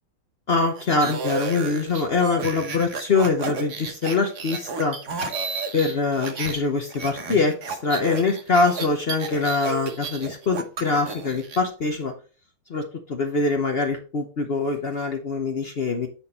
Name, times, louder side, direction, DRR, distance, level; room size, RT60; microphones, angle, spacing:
voice 1, 0.5-5.0 5.7-12.1 12.7-16.1, left 4 dB, 70° left, 4 dB, 0.5 m, -24 dB
sound 1, 0.8-6.6 6.9-11.6, right 3 dB, 50° right, 1.0 m, -32 dB
9.5 x 4.2 x 4.2 m, 0.38 s
omnidirectional pair, 2.3 m